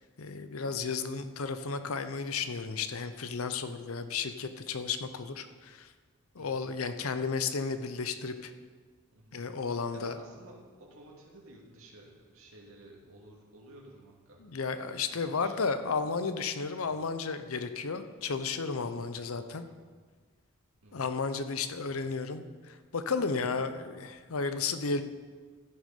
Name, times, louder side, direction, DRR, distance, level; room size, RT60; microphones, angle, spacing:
voice 1, 0.2-5.9 6.4-8.5 9.3-10.2 14.4-19.7 20.9-25.0, left 4 dB, 80° left, 10 dB, 0.7 m, -33 dB
voice 2, 9.7-14.5 15.1-16.2 16.8-17.0 18.8-19.8 20.8-21.1 21.7-21.9 23.4-23.5, right 1 dB, 75° right, -2 dB, 2.3 m, -54 dB
14.0 x 6.4 x 5.3 m, 1.5 s
head